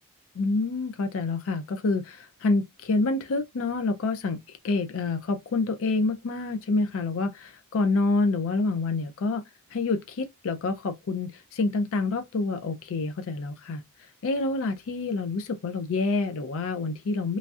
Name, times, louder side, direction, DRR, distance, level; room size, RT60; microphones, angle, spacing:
voice 1, 0.4-9.4 9.7-13.8 14.2-17.4, left 3 dB, 65° left, 0.4 m, -27 dB
3.1 x 2.6 x 2.3 m
head